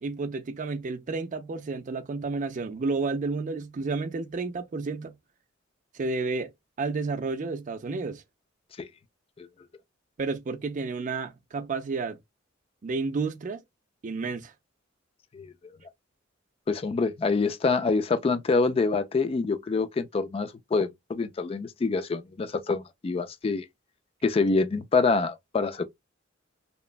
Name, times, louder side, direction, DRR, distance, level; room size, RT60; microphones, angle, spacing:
voice 1, 0.0-5.1 5.9-6.5 6.8-8.2 10.2-12.2 12.8-13.6 14.0-14.5, right 4 dB, 40° right, 0.4 m, -31 dB
voice 2, 16.7-23.7 24.2-25.8, left 4 dB, 30° left, 0.3 m, -26 dB
2.9 x 2.1 x 2.4 m
head